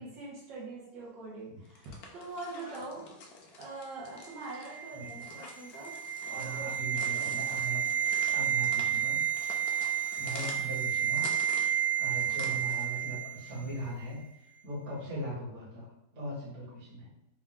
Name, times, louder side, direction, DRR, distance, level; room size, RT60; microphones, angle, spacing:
voice 1, 0.0-3.0 3.6-5.9 6.3-7.3, right 3 dB, 80° right, -6 dB, 1.6 m, -43 dB
sound 1, 1.6-13.0, left 3 dB, 65° left, 1.1 m, -48 dB
sound 2, 4.3-13.6 13.8-14.0, right 9 dB, 20° right, 1.0 m, -31 dB
voice 2, 4.9-5.2 6.4-7.8 8.3-9.2 10.2-11.3 12.0-14.2 14.6-15.9 16.1-17.1, right 1 dB, 55° right, -6 dB, 1.8 m, -39 dB
4.2 x 2.4 x 3.5 m, 0.84 s
omnidirectional pair, 2.0 m